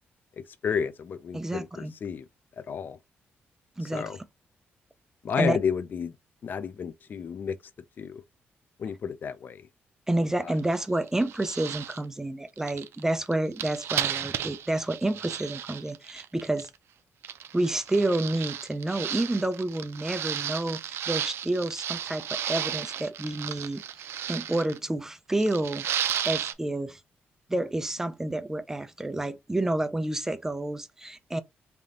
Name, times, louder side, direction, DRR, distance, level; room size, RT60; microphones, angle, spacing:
voice 1, 0.4-2.2 2.6-3.0 3.9-4.2 5.2-6.1 6.4-7.6 8.0-8.2 8.8-9.7 10.4-10.5, left 7 dB, 50° left, 0.5 m, -31 dB
voice 2, 1.3-1.9 3.8-4.1 5.4-5.6 10.1-16.7 17.5-23.8 24.3-25.9 26.2-27.0 27.5-31.4, right 1 dB, 10° right, 0.5 m, -29 dB
sound 1, 10.6-10.8 11.1-12.0 12.6-16.7 17.2-24.8 25.4-26.5, right 10 dB, 75° right, 0.5 m, -33 dB
3.4 x 2.7 x 3.7 m
cardioid pair, 115°, 4 cm